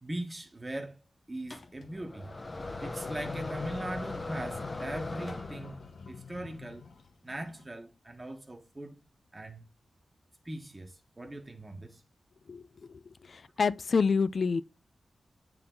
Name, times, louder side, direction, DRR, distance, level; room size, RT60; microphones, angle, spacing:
voice 1, 0.0-1.0 1.3-2.4 2.8-6.8 7.2-8.9 9.3-9.6 10.4-12.0, right 1 dB, 20° right, 1.3 m, -40 dB
sound 1, 1.5-1.9 2.6-7.6, left 5 dB, 70° left, 1.1 m, -46 dB
sound 2, 1.5-6.0, left 2 dB, 25° left, 0.9 m, -39 dB
voice 2, 13.3-14.6, left 5 dB, 50° left, 0.4 m, -27 dB
9.1 x 3.8 x 3.8 m
wide cardioid pair, 165°, 0 cm